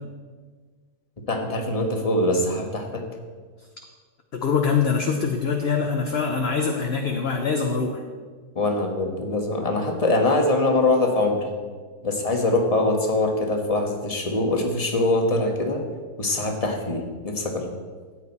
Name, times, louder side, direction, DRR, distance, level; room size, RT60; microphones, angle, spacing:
voice 1, 1.3-3.0 8.5-11.5 12.0-15.8 16.2-17.6, left 2 dB, 25° left, 2 dB, 1.4 m, -23 dB
voice 2, 4.3-8.0, left 5 dB, 50° left, 3 dB, 1.0 m, -24 dB
14.0 x 9.1 x 4.2 m, 1.5 s
omnidirectional pair, 1.6 m